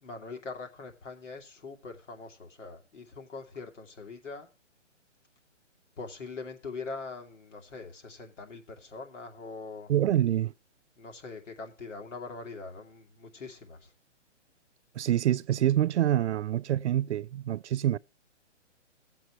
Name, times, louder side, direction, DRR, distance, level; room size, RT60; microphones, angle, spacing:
voice 1, 0.0-4.5 6.0-9.9 11.0-13.9, left 4 dB, 80° left, 2.6 m, -42 dB
voice 2, 9.9-10.5 15.0-18.0, right 12 dB, 70° right, 0.5 m, -26 dB
17.0 x 7.6 x 3.0 m
hypercardioid pair, 160°, 36 cm